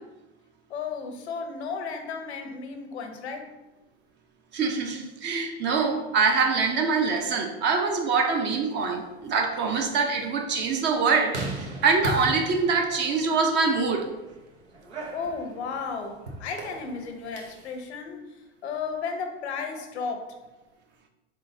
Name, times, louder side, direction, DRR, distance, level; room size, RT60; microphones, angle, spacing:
voice 1, 0.7-3.5 15.1-18.2 18.6-20.2, left 5 dB, 75° left, 5 dB, 0.8 m, -34 dB
voice 2, 4.5-11.4 11.8-14.1, right 4 dB, 35° right, 4 dB, 0.6 m, -24 dB
sound 1, 8.6-17.7, right 2 dB, 85° right, 0.9 m, -39 dB
4.1 x 3.7 x 2.6 m, 1.0 s
hypercardioid pair, 90°, 33 cm